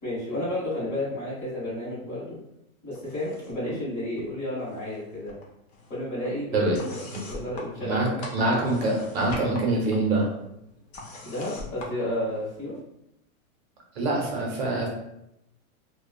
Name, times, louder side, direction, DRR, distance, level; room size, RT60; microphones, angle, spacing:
voice 1, 0.0-2.4 2.8-5.4 5.9-8.5 11.2-12.7, left 1 dB, 20° left, -9 dB, 1.2 m, -32 dB
sound 1, 2.9-3.7 4.0-5.0 5.3-12.8, left 2 dB, 50° left, 0.6 m, -43 dB
voice 2, 7.8-10.3 13.9-14.9, right 2 dB, 45° right, -1 dB, 0.8 m, -25 dB
2.9 x 2.3 x 2.3 m, 0.82 s
supercardioid pair, 175°, 44 cm